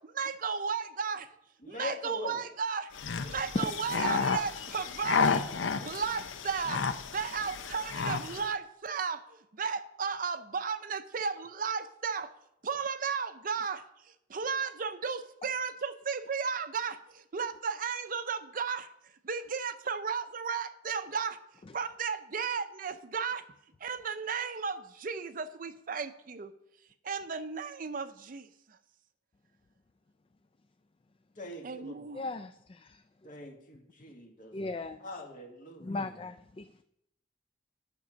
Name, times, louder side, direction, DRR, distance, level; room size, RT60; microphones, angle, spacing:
voice 1, 0.1-1.3 1.7-2.9 3.2-5.3 5.8-9.2 9.5-12.3 12.6-13.8 14.3-18.9 19.2-21.4 21.7-23.4 23.8-26.5 27.0-28.8 31.6-32.2, right 6 dB, 45° right, 0.5 m, -34 dB
voice 2, 1.6-2.4 31.4-32.1 33.2-34.6 35.0-36.1, left 1 dB, 45° left, 1.6 m, -42 dB
sound 1, 2.9-8.5, left 5 dB, 85° left, 0.6 m, -32 dB
voice 3, 32.1-33.0 34.5-35.0 35.8-36.6, left 2 dB, 30° left, 0.3 m, -36 dB
9.9 x 6.1 x 6.1 m
head